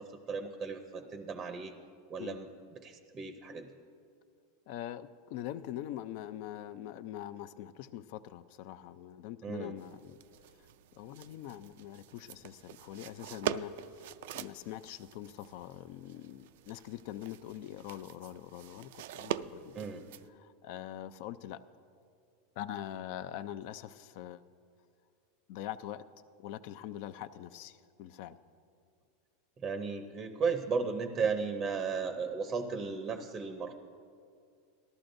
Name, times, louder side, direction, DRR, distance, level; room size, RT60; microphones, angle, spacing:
voice 1, 0.0-1.7 2.1-2.5 2.8-3.7 9.4-9.8 19.7-20.1 29.6-33.7, right 5 dB, 20° right, 6 dB, 0.6 m, -35 dB
voice 2, 4.7-10.2 10.6-14.0 14.3-19.8 20.3-21.6 22.6-24.4 25.5-26.0 26.4-28.4, left 12 dB, 50° left, 14 dB, 0.4 m, -43 dB
sound 1, 9.8-20.3, right 12 dB, 65° right, 0.3 m, -43 dB
18.5 x 13.5 x 2.6 m, 2.4 s
supercardioid pair, 160°, 0 cm